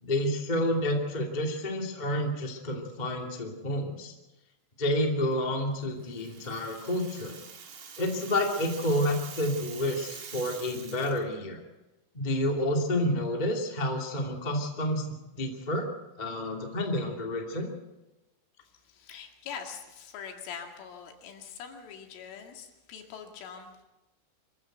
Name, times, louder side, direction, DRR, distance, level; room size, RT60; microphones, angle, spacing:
voice 1, 0.0-4.1 4.8-7.4 8.0-11.6 12.1-15.8 16.2-17.7, left 1 dB, 20° left, 1 dB, 1.2 m, -29 dB
Rattle (instrument), 6.0-11.2, right 6 dB, 50° right, 2.6 m, -45 dB
voice 2, 18.8-23.8, left 7 dB, 80° left, 3 dB, 4.7 m, -43 dB
24.5 x 15.0 x 7.9 m, 1.0 s
omnidirectional pair, 5.6 m